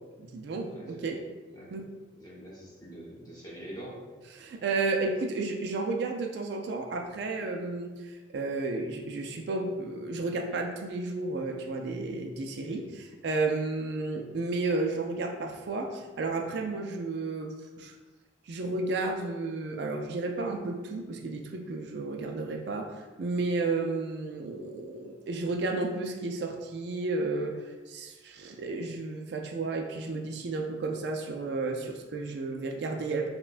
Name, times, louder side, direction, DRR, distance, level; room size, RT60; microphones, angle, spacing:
voice 1, 0.2-1.2 1.7-1.8 4.3-17.9 18.5-33.3, right 3 dB, 60° right, 3 dB, 0.3 m, -32 dB
voice 2, 0.7-1.1 1.5-1.7 2.1-4.0 12.7-12.9, right 1 dB, 20° left, -6 dB, 1.0 m, -45 dB
5.4 x 2.2 x 2.4 m, 1.3 s
head